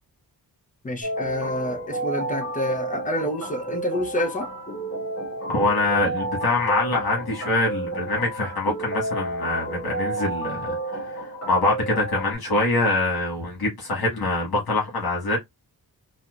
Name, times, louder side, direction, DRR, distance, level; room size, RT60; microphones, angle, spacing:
voice 1, 0.8-4.5, equal, 20° left, 0.7 m, -28 dB
sound 1, 1.0-12.4, right 1 dB, 40° left, 1.7 m, -31 dB
voice 2, 5.5-15.4, left 2 dB, 75° left, 1.4 m, -24 dB
4.1 x 2.2 x 2.4 m
wide cardioid pair, 135°, 37 cm